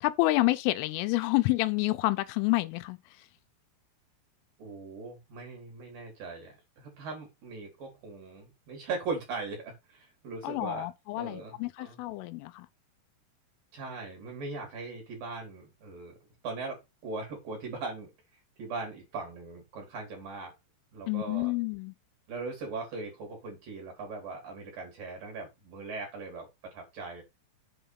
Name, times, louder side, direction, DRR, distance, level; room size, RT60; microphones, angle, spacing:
voice 1, 0.0-3.0 10.4-12.7 21.1-21.9, left 19 dB, 90° left, 3.3 m, -28 dB
voice 2, 4.6-10.9 11.2-12.0 13.7-16.2 16.4-18.1 18.6-20.5 20.9-21.5 22.3-27.2, right 3 dB, 50° right, 4.1 m, -39 dB
8.1 x 4.3 x 5.8 m
omnidirectional pair, 5.6 m